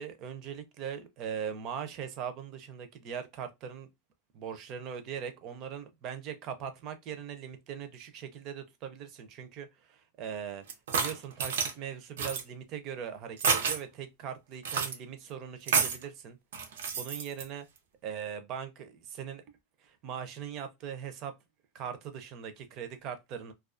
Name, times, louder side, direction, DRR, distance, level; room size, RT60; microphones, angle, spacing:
voice 1, 0.0-3.9 4.3-10.6 10.9-16.4 16.9-17.7 18.0-19.4 19.8-21.3 21.7-23.5, right 8 dB, 35° right, 0.5 m, -40 dB
sound 1, 10.7-11.7 12.2-12.4 13.4-13.8 14.6-14.9 15.7-16.0 16.5-17.4, right 6 dB, 90° right, 0.6 m, -29 dB
2.3 x 2.3 x 2.4 m
supercardioid pair, 160°, 0 cm